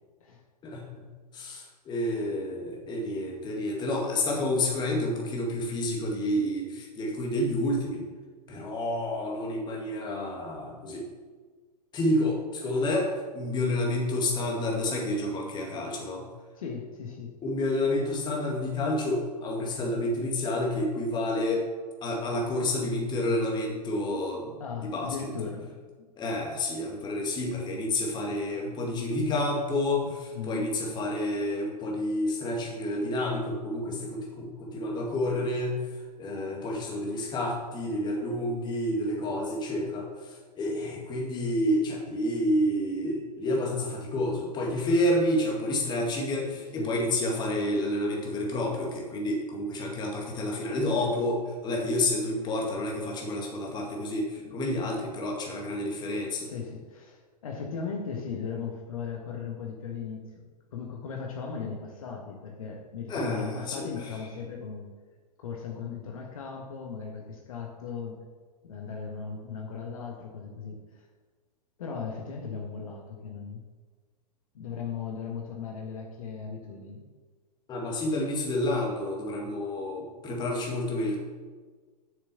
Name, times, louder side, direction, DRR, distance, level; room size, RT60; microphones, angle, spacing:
voice 1, 0.6-1.0 1.3-8.1 8.5-11.1 11.9-16.3 17.4-21.6 22.0-24.5 24.8-25.2 25.4-25.5 26.2-35.8 36.2-56.5 63.1-63.9 77.7-81.2, left 1 dB, 20° left, -1 dB, 2.2 m, -29 dB
voice 2, 16.6-17.4 24.6-26.1 30.3-30.8 46.5-47.0 51.0-51.2 54.3-54.6 56.4-64.9 65.4-68.2 68.6-71.0 71.8-73.6 74.5-77.0, left 6 dB, 55° left, 1 dB, 1.5 m, -37 dB
7.4 x 6.6 x 7.1 m, 1.4 s
figure-of-eight pair, 105°, 21 cm